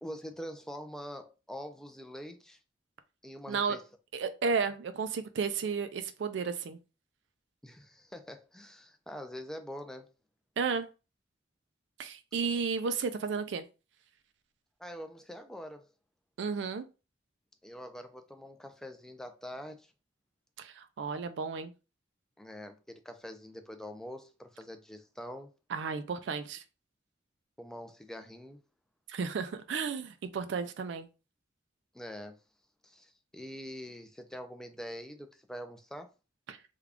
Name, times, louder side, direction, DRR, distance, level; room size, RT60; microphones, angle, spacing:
voice 1, 0.0-2.6 3.2-3.8 7.6-10.1 14.8-15.9 17.6-19.9 22.4-25.5 27.6-28.6 31.9-32.3 32.8-36.1, equal, 5° left, 0.4 m, -44 dB
voice 2, 4.1-6.8 10.6-10.9 12.0-13.6 16.4-16.9 20.6-21.7 25.7-26.6 29.1-31.1 36.5-36.6, right 5 dB, 70° right, 0.4 m, -33 dB
3.6 x 2.2 x 3.4 m
head